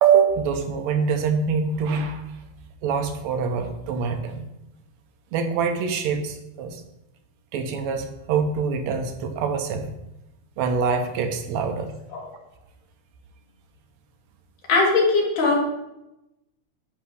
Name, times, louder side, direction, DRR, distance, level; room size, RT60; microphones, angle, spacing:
voice 1, 0.0-2.2 2.8-4.4 5.3-6.8 7.5-9.9 10.6-11.9, right 6 dB, 70° right, 6 dB, 1.9 m, -24 dB
voice 2, 14.7-15.6, left 3 dB, 90° left, -2 dB, 3.5 m, -19 dB
11.0 x 3.6 x 6.4 m, 0.89 s
omnidirectional pair, 3.5 m